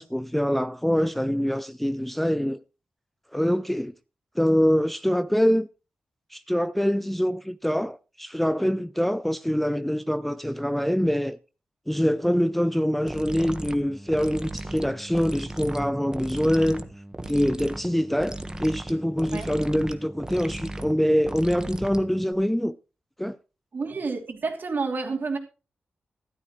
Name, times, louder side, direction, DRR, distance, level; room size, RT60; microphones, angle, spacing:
voice 1, 0.0-2.6 3.3-3.9 4.4-5.7 6.3-11.4 11.9-16.9 17.3-22.8 23.2-23.4, equal, 5° left, 0.5 m, -24 dB
sound 1, 13.1-22.3, right 1 dB, 15° right, 1.4 m, -36 dB
voice 2, 23.7-25.4, right 4 dB, 55° right, 3.0 m, -29 dB
13.5 x 12.5 x 3.2 m
wide cardioid pair, 90°, 4 cm